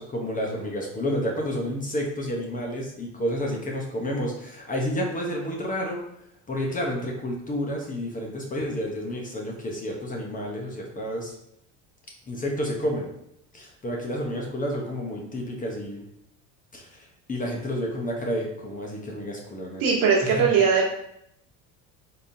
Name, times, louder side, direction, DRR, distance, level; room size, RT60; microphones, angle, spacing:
voice 1, 0.0-6.0 6.5-11.3 12.3-13.1 13.5-16.0 16.7-19.8 20.2-20.5, equal, 20° left, -1 dB, 0.8 m, -30 dB
voice 2, 19.8-20.9, right 6 dB, 65° right, -2 dB, 1.4 m, -20 dB
4.2 x 3.5 x 2.7 m, 0.76 s
supercardioid pair, 115°, 37 cm